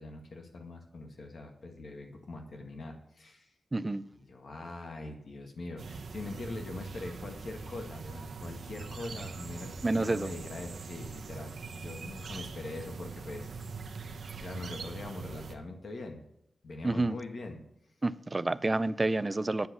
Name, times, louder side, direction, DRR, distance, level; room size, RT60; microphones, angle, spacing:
voice 1, 0.0-3.5 4.1-13.5 14.4-16.2 16.6-17.6, left 2 dB, 60° left, 1.8 m, -42 dB
voice 2, 3.7-4.0 9.8-10.3 16.8-17.2 18.0-19.7, right 2 dB, 25° right, 0.5 m, -29 dB
sound 1, 5.8-15.5, right 4 dB, 75° right, 1.0 m, -42 dB
9.7 x 7.7 x 6.8 m
wide cardioid pair, 125°, 0 cm